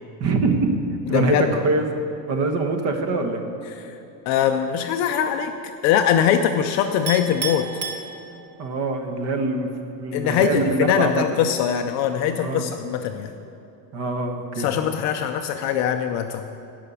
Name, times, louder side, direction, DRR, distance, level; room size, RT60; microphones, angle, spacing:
voice 1, 0.2-0.7 1.1-1.8 2.3-3.4 8.6-11.2 12.3-12.7 13.9-14.7, right 3 dB, 35° right, 5 dB, 1.1 m, -24 dB
voice 2, 1.1-1.5 3.7-3.9 4.3-5.5 5.8-7.7 10.1-13.3 14.6-16.4, left 9 dB, 40° left, 6 dB, 0.4 m, -22 dB
Chink clink, 7.1-8.7, right 5 dB, 65° right, 1.8 m, -31 dB
17.0 x 5.7 x 6.9 m, 2.8 s
cardioid pair, 165°, 45 cm